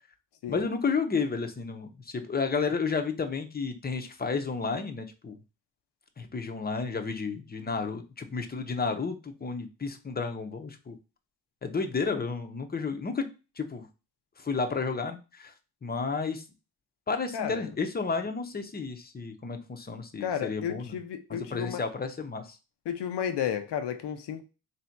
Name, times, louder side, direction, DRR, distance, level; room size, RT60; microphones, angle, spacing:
voice 1, 0.5-5.3 6.2-11.0 11.6-13.3 13.6-13.8 14.4-15.5 15.8-16.4 17.1-21.0 21.3-22.6, left 4 dB, 25° left, 0.7 m, -32 dB
voice 2, 17.3-17.7 20.2-21.8 22.9-24.4, left 9 dB, 85° left, 0.8 m, -32 dB
3.3 x 2.8 x 4.4 m
cardioid pair, 95°, 40 cm